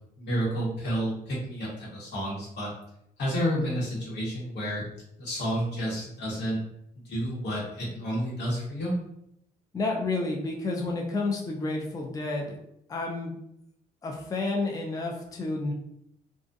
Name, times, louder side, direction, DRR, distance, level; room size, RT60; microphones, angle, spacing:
voice 1, 0.2-2.7 3.2-4.8 5.2-6.6 7.0-8.9, equal, 75° left, -5 dB, 1.2 m, -30 dB
voice 2, 9.7-12.6 12.9-13.4 14.0-15.7, left 2 dB, 20° left, 0 dB, 0.4 m, -30 dB
2.4 x 2.3 x 2.6 m, 0.76 s
cardioid pair, 100°, 17 cm